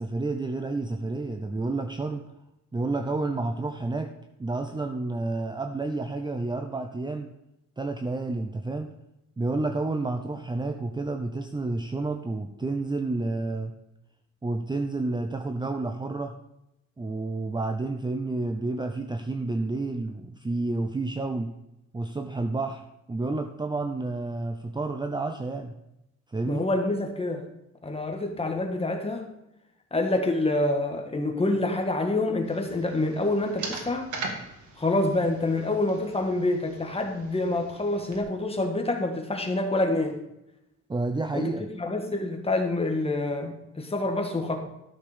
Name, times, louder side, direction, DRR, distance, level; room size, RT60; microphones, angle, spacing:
voice 1, 0.0-2.2 2.7-4.1 4.4-7.3 7.8-8.9 9.4-13.7 14.4-16.3 17.0-21.5 21.9-25.8 26.3-26.6 40.9-41.7, right 2 dB, 15° right, 6 dB, 0.6 m, -30 dB
voice 2, 26.5-27.5 27.8-29.3 29.9-34.1 34.8-40.1 41.3-41.5 41.8-44.6, left 2 dB, 20° left, 3 dB, 1.6 m, -27 dB
sound 1, 32.5-38.2, right 3 dB, 80° right, 2.0 m, -41 dB
13.0 x 6.7 x 5.1 m, 0.88 s
wide cardioid pair, 140°, 29 cm